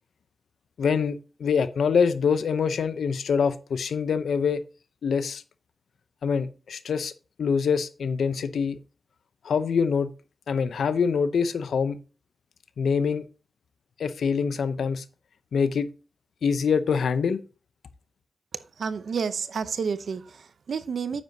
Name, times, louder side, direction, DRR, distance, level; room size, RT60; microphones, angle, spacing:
voice 1, 0.8-4.6 5.0-5.4 6.2-7.1 7.4-8.8 9.4-10.1 10.5-12.0 12.8-13.3 14.0-15.0 15.5-15.9 16.4-17.4, left 6 dB, 85° left, 0.6 m, -25 dB
voice 2, 18.5-21.2, right 6 dB, 75° right, 0.6 m, -30 dB
9.6 x 7.6 x 2.7 m
cardioid pair, 60°, 0 cm